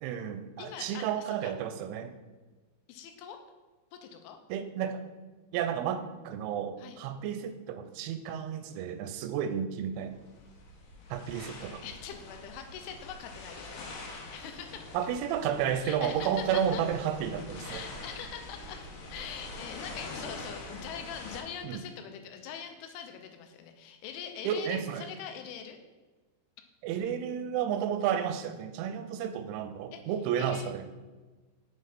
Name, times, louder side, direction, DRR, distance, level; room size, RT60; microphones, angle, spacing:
voice 1, 0.0-2.1 4.5-5.0 5.5-10.2 11.1-11.8 14.9-17.8 21.6-21.8 24.4-25.1 26.8-30.9, right 8 dB, 85° right, 9 dB, 3.0 m, -32 dB
voice 2, 0.6-1.5 2.9-3.4 3.9-4.4 6.8-7.0 11.8-14.9 15.8-16.8 17.6-25.8 29.9-30.0 30.4-30.7, left 8 dB, 90° left, 6 dB, 3.2 m, -43 dB
sound 1, 10.0-21.4, left 2 dB, 70° left, 3.0 m, -44 dB
7.1 x 6.3 x 4.2 m, 1.3 s
omnidirectional pair, 5.4 m